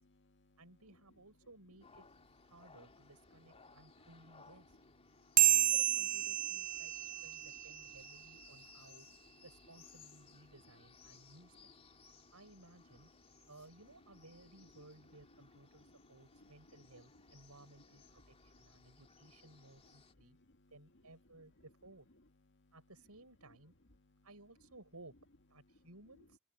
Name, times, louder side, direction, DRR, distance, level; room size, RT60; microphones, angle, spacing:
voice 1, 0.0-0.6 3.6-3.8 5.0-5.5 6.8-7.1 7.4-7.8 8.8-8.9 10.3-10.4 11.1-11.3 11.9-12.3 13.3-13.5 16.1-16.9 18.2-19.0 19.8-20.7 22.5-22.7 24.0-24.2, left 1 dB, 55° left, 2.0 m, -68 dB
voice 2, 0.6-2.1 2.4-4.8 5.5-6.9 7.2-9.1 9.4-11.7 12.3-13.1 13.5-20.4 20.7-22.1 22.7-23.7 24.2-25.1 25.5-26.4, right 2 dB, 80° right, 7.6 m, -59 dB
sound 1, 1.8-20.1, left 5 dB, 30° left, 3.4 m, -63 dB
sound 2, 5.4-8.2, right 15 dB, 40° right, 0.4 m, -31 dB
open air
head